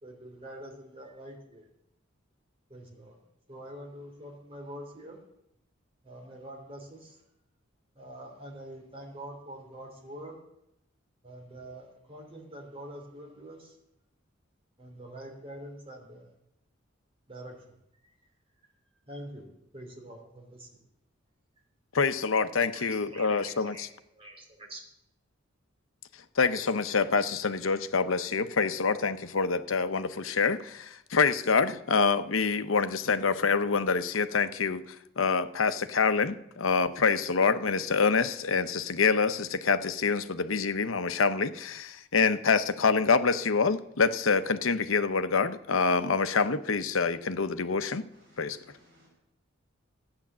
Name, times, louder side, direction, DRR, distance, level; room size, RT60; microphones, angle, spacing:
voice 1, 0.0-1.7 2.7-3.2 3.5-5.2 6.0-7.2 7.9-10.4 11.2-13.8 14.8-16.3 17.3-17.6 18.0-18.1 19.1-19.5 19.7-20.8 22.7-24.8, right 1 dB, 30° right, 1 dB, 3.1 m, -45 dB
voice 2, 21.9-23.9 26.4-34.8 35.2-48.0 48.4-48.6, left 5 dB, 85° left, 12 dB, 0.8 m, -26 dB
voice 3, 48.1-49.1, equal, 65° right, -4 dB, 5.7 m, -61 dB
14.0 x 9.7 x 7.4 m, 0.81 s
head